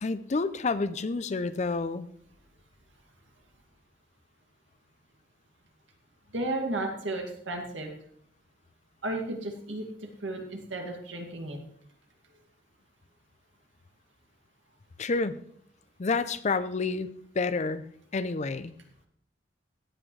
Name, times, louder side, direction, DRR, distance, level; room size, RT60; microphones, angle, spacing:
voice 1, 0.0-2.1 15.0-15.4 16.0-17.9 18.1-18.7, left 3 dB, 40° left, 14 dB, 0.5 m, -29 dB
voice 2, 6.3-7.9 9.0-9.8 10.2-11.6, right 2 dB, 85° right, 2 dB, 2.3 m, -33 dB
16.5 x 8.7 x 3.3 m, 0.66 s
head